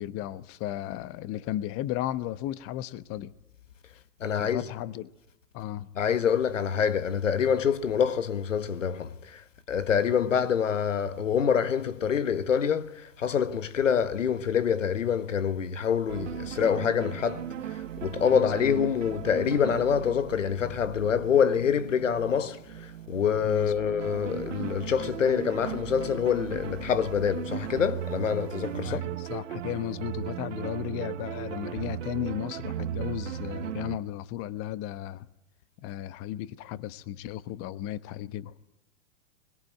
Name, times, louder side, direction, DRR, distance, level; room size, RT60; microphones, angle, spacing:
voice 1, 0.0-3.3 4.3-5.1 5.5-5.9 16.6-16.7 18.3-18.8 23.4-23.9 28.8-35.3 35.8-38.5, left 13 dB, 35° left, 1.1 m, -35 dB
voice 2, 4.2-4.6 5.9-29.0, left 7 dB, 90° left, 1.4 m, -26 dB
sound 1, 16.1-34.0, right 11 dB, 75° right, 1.3 m, -37 dB
23.0 x 21.0 x 9.1 m
hypercardioid pair, 115°, 37 cm